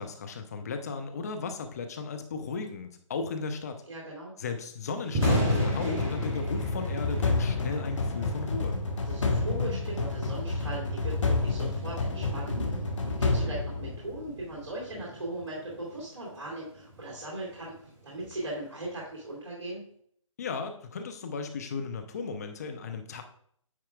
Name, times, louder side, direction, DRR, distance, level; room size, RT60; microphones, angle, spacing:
voice 1, 0.0-3.8 4.4-8.8 20.4-23.2, left 4 dB, 30° left, 6 dB, 0.6 m, -35 dB
voice 2, 3.9-4.4 9.0-12.8 13.1-17.7 18.0-19.8, right 1 dB, 50° right, -5 dB, 2.3 m, -38 dB
Thunder, 5.0-19.1, right 1 dB, 5° right, 0.3 m, -38 dB
sound 1, 5.2-14.4, left 3 dB, 65° left, 1.3 m, -29 dB
9.5 x 4.4 x 2.4 m, 0.63 s
figure-of-eight pair, 150°, 17 cm